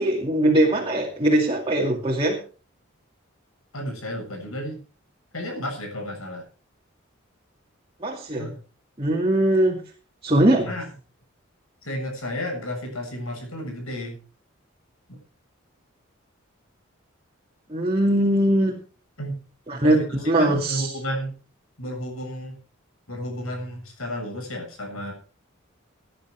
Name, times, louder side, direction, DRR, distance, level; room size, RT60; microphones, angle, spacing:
voice 1, 0.0-2.4 8.0-8.5 9.0-9.8 10.2-10.7 17.7-18.8 19.7-20.9, right 1 dB, 25° right, -1 dB, 2.4 m, -21 dB
voice 2, 3.7-4.8 5.3-6.5 8.4-8.6 10.5-10.9 11.8-14.2 15.1-15.2 19.2-19.4 19.7-21.4 21.8-22.6 23.1-25.1, equal, 85° left, 3 dB, 7.3 m, -32 dB
18.0 x 10.5 x 4.6 m, 0.36 s
head